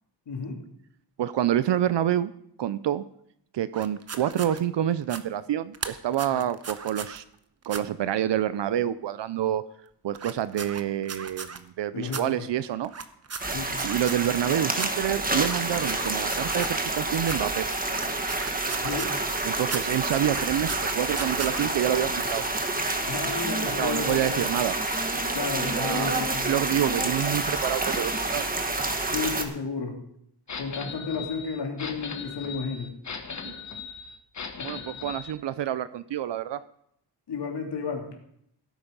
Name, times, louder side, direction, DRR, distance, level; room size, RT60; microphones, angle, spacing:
voice 1, 0.3-0.6 6.3-6.4 11.9-12.5 13.5-13.7 18.8-19.2 22.8-24.5 25.3-26.5 29.1-30.0 30.6-32.9 34.6-34.8 37.3-38.1, left 5 dB, 70° left, 1 dB, 3.3 m, -32 dB
voice 2, 1.2-2.3 2.6-3.0 3.5-7.2 7.7-9.6 10.0-12.9 13.8-17.7 19.4-22.4 23.8-24.8 25.7-26.1 26.4-28.5 33.4-33.5 34.6-36.6, right 11 dB, 75° right, 15 dB, 0.6 m, -27 dB
sound 1, 3.7-4.6 5.0-5.2 5.7-7.2 7.6-7.8 10.1-11.6 12.1-12.2 12.8-14.4 14.7-14.9 15.4-16.9 17.2-17.4 17.8-19.3 19.6-19.8 20.2-21.7, right 5 dB, 35° right, 1.0 m, -37 dB
sound 2, 13.4-29.4, right 2 dB, 20° right, 1.6 m, -28 dB
sound 3, 30.5-35.3, left 5 dB, 40° left, 1.4 m, -38 dB
17.0 x 8.8 x 5.5 m, 0.72 s
wide cardioid pair, 130°, 43 cm